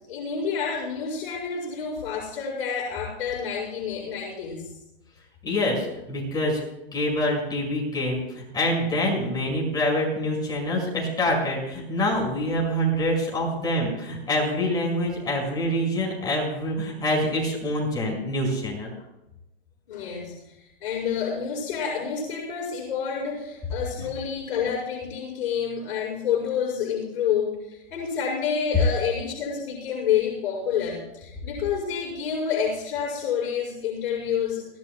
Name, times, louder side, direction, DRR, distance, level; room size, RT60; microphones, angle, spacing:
voice 1, 0.1-4.7 19.9-34.7, left 7 dB, 55° left, -8 dB, 5.7 m, -28 dB
voice 2, 5.4-6.6 6.9-18.9, left 1 dB, 10° left, -3 dB, 5.4 m, -26 dB
24.0 x 16.0 x 2.3 m, 0.94 s
hypercardioid pair, 145°, 32 cm